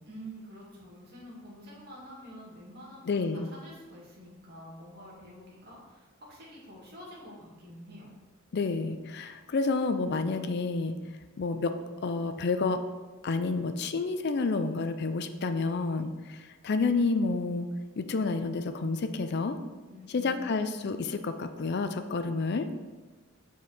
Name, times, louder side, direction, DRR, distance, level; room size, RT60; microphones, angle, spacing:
voice 1, 0.1-8.1 19.9-20.4, equal, 50° right, -5 dB, 2.2 m, -48 dB
voice 2, 3.1-3.5 8.5-11.0 11.4-12.8 13.2-17.7 18.0-19.6 20.1-22.7, left 3 dB, 50° left, 9 dB, 0.4 m, -29 dB
7.3 x 4.5 x 4.0 m, 1.3 s
head